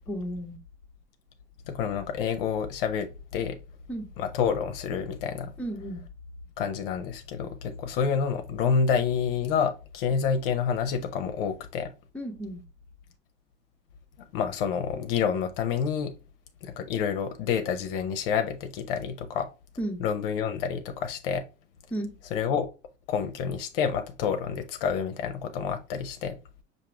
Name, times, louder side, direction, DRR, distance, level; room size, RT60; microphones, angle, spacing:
voice 1, 0.1-0.6 3.9-4.1 5.6-6.0 12.1-12.6 19.8-20.0 21.9-22.1, right 1 dB, 5° left, 0.9 m, -33 dB
voice 2, 1.7-3.6 4.2-5.5 6.6-11.9 14.2-16.1 16.6-19.5 20.0-21.4 22.3-22.7 23.1-26.4, left 7 dB, 50° left, 0.7 m, -28 dB
5.8 x 2.6 x 3.2 m
figure-of-eight pair, 75°, 35 cm